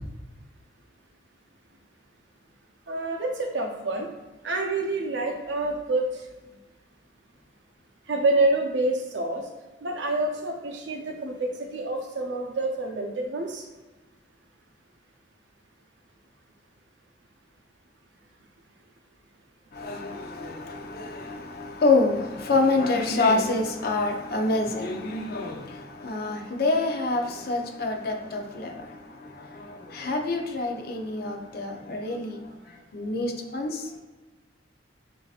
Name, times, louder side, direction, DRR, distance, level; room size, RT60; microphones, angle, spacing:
voice 1, 2.9-4.1 4.4-6.1 8.1-9.4 9.8-13.6, right 2 dB, 70° right, 2 dB, 0.7 m, -27 dB
voice 2, 19.7-28.7 29.6-32.4 32.9-33.8, left 3 dB, 55° left, 3 dB, 0.6 m, -27 dB
7.4 x 2.7 x 2.4 m, 1.2 s
head